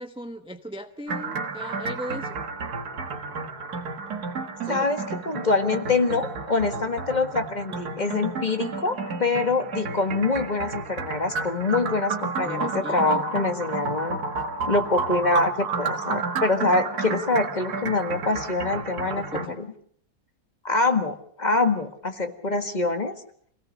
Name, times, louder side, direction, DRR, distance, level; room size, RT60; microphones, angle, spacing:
voice 1, 0.0-2.4 4.7-4.9 12.4-13.2 19.2-19.6, equal, 5° right, 7 dB, 0.6 m, -37 dB
sound 1, 1.1-19.5, right 4 dB, 60° right, 2.1 m, -31 dB
voice 2, 4.7-14.2 14.7-19.7 20.6-23.2, left 3 dB, 25° left, 7 dB, 1.6 m, -25 dB
26.5 x 17.5 x 6.5 m, 0.64 s
omnidirectional pair, 1.9 m